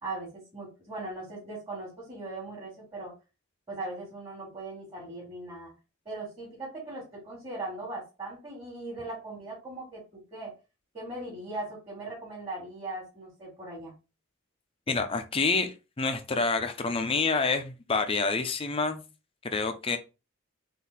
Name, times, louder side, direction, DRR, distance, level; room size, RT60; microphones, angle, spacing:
voice 1, 0.0-3.1 3.7-5.7 6.1-10.5 10.9-13.9, right 2 dB, 25° right, 2.0 m, -39 dB
voice 2, 14.9-19.0 19.5-20.0, left 4 dB, 25° left, 0.6 m, -28 dB
4.0 x 2.7 x 4.0 m
head